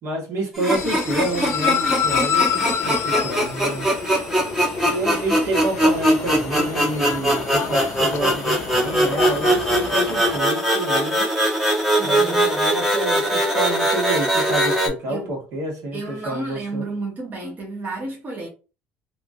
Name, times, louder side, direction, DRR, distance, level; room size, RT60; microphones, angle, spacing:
voice 1, 0.0-3.9 4.8-11.3 12.0-16.8, right 2 dB, 60° right, 1.3 m, -29 dB
sound 1, 0.5-14.9, right 1 dB, 5° right, 1.0 m, -21 dB
sound 2, 0.8-10.4, left 8 dB, 50° left, 0.4 m, -28 dB
voice 2, 12.0-12.5 15.1-15.4 15.9-18.5, right 2 dB, 30° right, 1.0 m, -31 dB
2.8 x 2.4 x 2.7 m
supercardioid pair, 100°, 6 cm